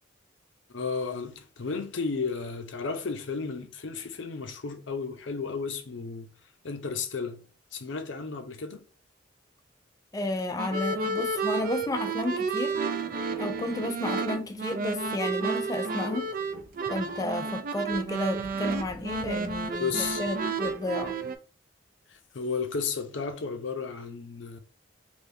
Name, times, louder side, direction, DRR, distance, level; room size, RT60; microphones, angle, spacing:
voice 1, 0.7-6.3 6.6-7.4 7.7-8.8 19.8-20.2 22.1-24.6, left 5 dB, 80° left, 0.6 m, -33 dB
voice 2, 10.1-12.8 13.4-16.3 16.9-21.2, left 1 dB, 20° left, 0.3 m, -32 dB
sound 1, 10.6-21.3, right 4 dB, 50° right, 0.4 m, -31 dB
3.4 x 2.7 x 2.6 m
head